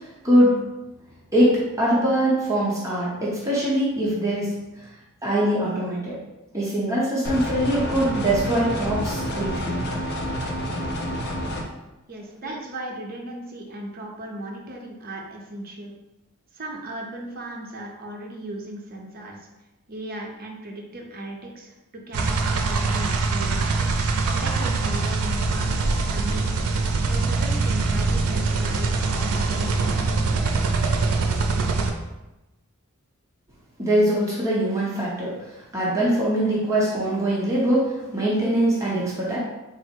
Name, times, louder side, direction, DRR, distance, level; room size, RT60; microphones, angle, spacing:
voice 1, 1.3-4.5 5.2-6.2 6.5-9.8 33.8-35.3 35.7-39.4, right 1 dB, 15° right, -7 dB, 0.7 m, -22 dB
sound 1, 7.2-11.6, equal, 50° left, 0.5 m, -28 dB
voice 2, 12.1-15.9 16.5-19.5 19.9-23.6 24.3-26.6 27.1-30.6, right 1 dB, 45° right, 0 dB, 0.7 m, -37 dB
sound 2, 22.1-31.9, right 3 dB, 90° right, 0.5 m, -23 dB
3.9 x 2.0 x 4.4 m, 1.0 s
head